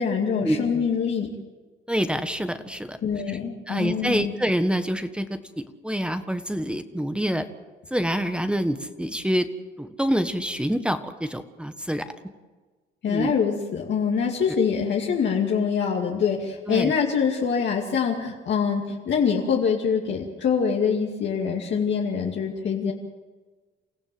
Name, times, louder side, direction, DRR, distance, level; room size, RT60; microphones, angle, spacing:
voice 1, 0.0-1.3 3.0-4.3 13.0-22.9, left 6 dB, 65° left, -1 dB, 2.6 m, -24 dB
voice 2, 1.9-3.0 3.3-3.4 3.7-7.5 7.9-9.5 9.8-12.1 13.1-13.3 14.5-14.6 16.7-16.9, equal, 5° right, 9 dB, 1.5 m, -26 dB
28.5 x 15.0 x 7.8 m, 1.3 s
cardioid pair, 90°, 20 cm